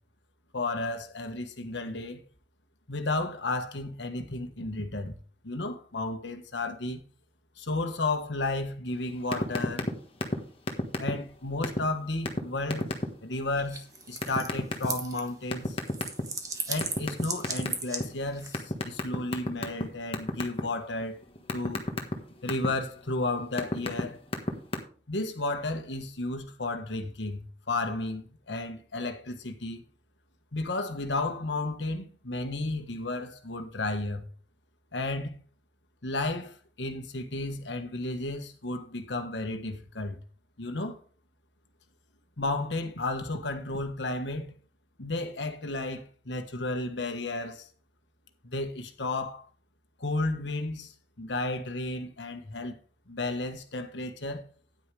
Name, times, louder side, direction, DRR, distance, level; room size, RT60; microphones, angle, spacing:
voice 1, 0.5-2.2 2.9-5.2 5.4-7.0 7.6-9.9 11.0-12.9 13.2-15.8 16.7-21.2 21.5-21.9 22.4-24.2 25.1-29.8 30.5-34.2 34.9-35.4 36.0-40.2 40.6-41.0 42.4-44.5 45.0-47.7 48.4-49.5 50.0-50.9 51.2-52.8 53.1-54.5, left 2 dB, 90° left, 1.4 m, -33 dB
sound 1, 9.3-9.9 10.2-10.4 10.7-11.3 11.6-11.8 12.3-12.4 12.7-13.1 14.2-14.9 15.5-16.4 16.8-18.0 18.5-19.8 20.1-20.6 21.0-22.7 23.3-24.0 24.3-24.8, left 1 dB, 30° left, 1.4 m, -28 dB
sound 2, 13.5-15.3 15.6-18.6, right 4 dB, 20° right, 1.5 m, -37 dB
9.8 x 9.5 x 3.3 m
head